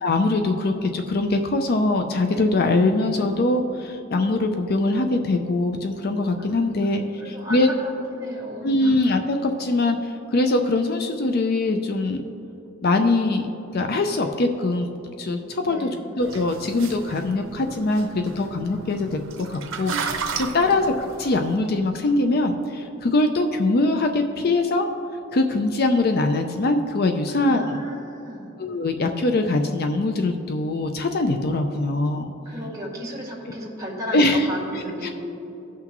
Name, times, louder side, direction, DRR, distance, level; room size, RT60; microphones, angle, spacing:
voice 1, 0.0-7.7 8.6-12.2 12.8-13.5 13.7-14.9 15.2-15.9 16.2-20.9 21.2-24.9 25.3-27.8 28.6-32.3 34.1-34.5 34.7-35.1, left 2 dB, 50° left, 5 dB, 0.5 m, -22 dB
voice 2, 6.4-7.7 8.1-9.0 15.6-16.0 20.6-20.8 27.3-28.5 32.5-35.1, equal, 15° right, -5 dB, 2.1 m, -35 dB
sound 1, 16.2-21.5, right 5 dB, 80° right, 0.8 m, -34 dB
17.0 x 5.9 x 3.0 m, 3.0 s
head